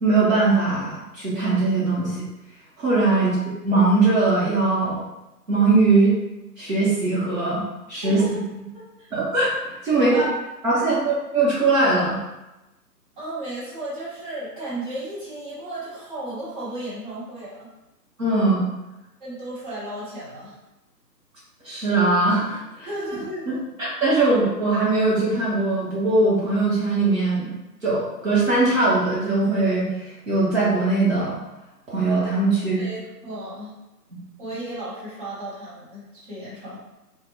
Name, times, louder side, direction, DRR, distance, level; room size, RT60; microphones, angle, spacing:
voice 1, 0.0-2.2 2.8-3.4 3.6-5.0 5.5-6.1 6.6-7.6 7.9-8.2 9.1-10.2 10.6-12.2 18.2-18.6 21.6-22.9 23.8-27.5 27.8-31.4 31.9-32.8, right 3 dB, 50° right, -8 dB, 1.3 m, -20 dB
voice 2, 8.0-8.4 8.7-9.1 9.9-10.3 10.7-10.9 13.2-17.7 19.2-20.5 22.8-23.6 32.8-33.7 34.4-36.9, right 1 dB, 30° right, -10 dB, 1.5 m, -34 dB
3.7 x 2.5 x 2.9 m, 0.98 s
figure-of-eight pair, 145°, 50 cm